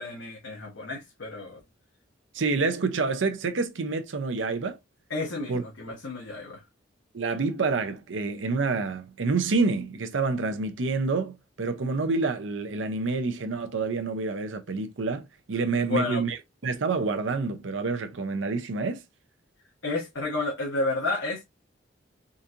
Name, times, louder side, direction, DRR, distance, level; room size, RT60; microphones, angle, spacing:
voice 1, 0.0-1.6 5.1-6.6 15.9-16.2 19.8-21.4, left 2 dB, 90° left, 1.2 m, -31 dB
voice 2, 2.3-4.8 5.5-5.6 7.1-16.4 16.6-19.0, right 4 dB, 80° right, 0.6 m, -28 dB
3.9 x 2.5 x 2.7 m
head